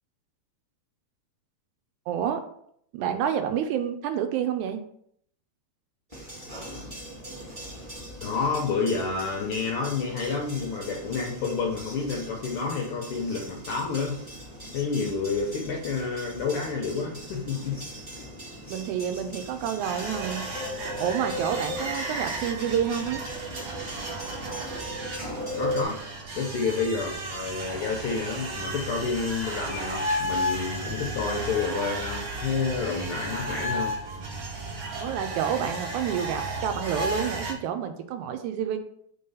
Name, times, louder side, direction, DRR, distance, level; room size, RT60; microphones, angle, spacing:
voice 1, 2.1-2.4 2.9-4.8 18.7-20.5 21.0-23.2 35.0-38.8, right 9 dB, 80° right, 7 dB, 2.0 m, -29 dB
sound 1, 6.1-25.8, equal, 15° right, 1.2 m, -39 dB
voice 2, 8.2-14.2 14.7-17.8 25.6-26.0 26.3-33.9, left 4 dB, 80° left, 0 dB, 1.2 m, -29 dB
sound 2, 19.8-37.5, right 1 dB, 55° right, 1.5 m, -34 dB
4.5 x 3.9 x 5.4 m, 0.68 s
omnidirectional pair, 3.5 m